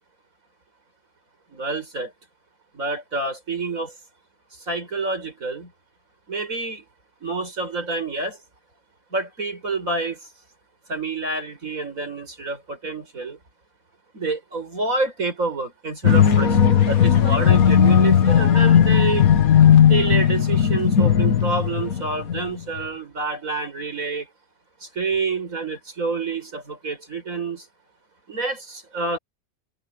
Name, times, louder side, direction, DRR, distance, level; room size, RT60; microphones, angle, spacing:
voice 1, 1.5-2.1 2.7-3.9 4.7-5.7 6.3-6.8 7.2-8.4 9.1-10.2 10.9-13.4 14.1-19.3 19.9-24.3 24.8-27.6 28.3-29.2, right 3 dB, 60° right, 6.4 m, -28 dB
sound 1, 16.0-22.4 22.8-22.9, left 8 dB, 70° left, 1.8 m, -16 dB
omnidirectional pair, 1.6 m